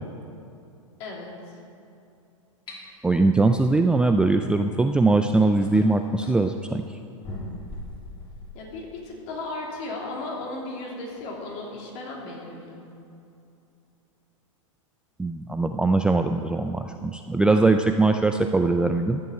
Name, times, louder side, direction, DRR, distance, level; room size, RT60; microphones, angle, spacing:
voice 1, 1.0-1.6 8.5-12.8, left 2 dB, 45° left, -2 dB, 3.1 m, -35 dB
sound 1, 2.7-2.8 4.7-4.8 5.4-6.4 7.2-8.5, left 1 dB, 30° left, 2.8 m, -39 dB
voice 2, 3.0-6.8 15.2-19.2, right 3 dB, 5° right, 6 dB, 0.3 m, -21 dB
13.5 x 7.6 x 6.4 m, 2.6 s
hypercardioid pair, 105°, 17 cm